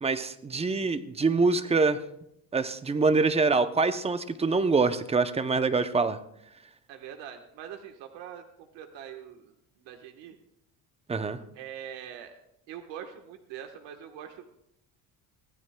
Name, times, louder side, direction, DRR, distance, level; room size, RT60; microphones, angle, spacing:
voice 1, 0.0-2.0 2.5-6.2 11.1-11.4, right 4 dB, 15° right, 11 dB, 0.5 m, -25 dB
voice 2, 6.9-10.4 11.5-12.4 12.7-14.5, right 9 dB, 90° right, 5 dB, 1.3 m, -43 dB
23.5 x 15.5 x 2.2 m, 0.77 s
cardioid pair, 145°, 42 cm